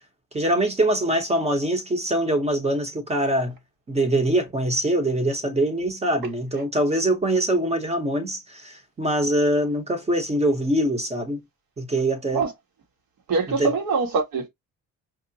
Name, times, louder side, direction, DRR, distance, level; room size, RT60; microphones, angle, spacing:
voice 1, 0.3-3.5 3.9-11.4 11.8-12.4 13.6-13.7, right 1 dB, 20° right, 0.8 m, -23 dB
voice 2, 13.3-14.5, right 4 dB, 80° right, 1.6 m, -23 dB
4.7 x 2.1 x 2.6 m
cardioid pair, 150°, 35 cm